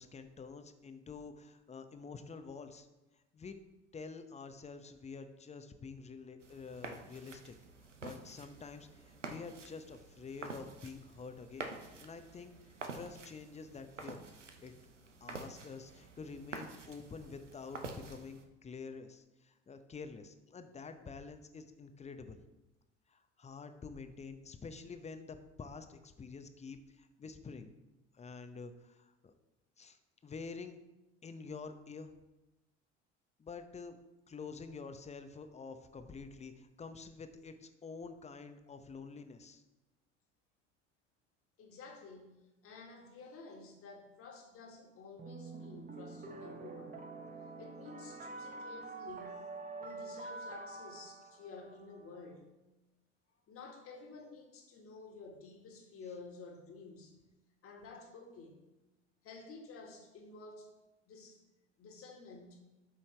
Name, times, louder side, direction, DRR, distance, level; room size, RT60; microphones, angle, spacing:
voice 1, 0.0-2.9 3.3-3.6 3.9-7.5 8.0-11.7 12.0-12.5 12.9-14.2 14.6-14.7 15.2-22.4 23.1-27.7 28.1-29.3 29.8-30.7 31.2-32.1 33.4-34.0 34.3-39.6, left 4 dB, 20° left, 8 dB, 0.8 m, -48 dB
sound 1, 6.4-18.4, right 3 dB, 90° right, 0.7 m, -48 dB
voice 2, 41.6-47.0 47.6-49.5 49.8-52.5 53.5-57.2 57.6-58.7 59.2-60.7 61.1-61.4 61.8-62.6, left 4 dB, 40° left, 2 dB, 1.9 m, -52 dB
sound 2, 45.2-52.2, right 3 dB, 25° right, 1.1 m, -47 dB
12.5 x 5.6 x 3.3 m, 1.0 s
figure-of-eight pair, 65°, 35 cm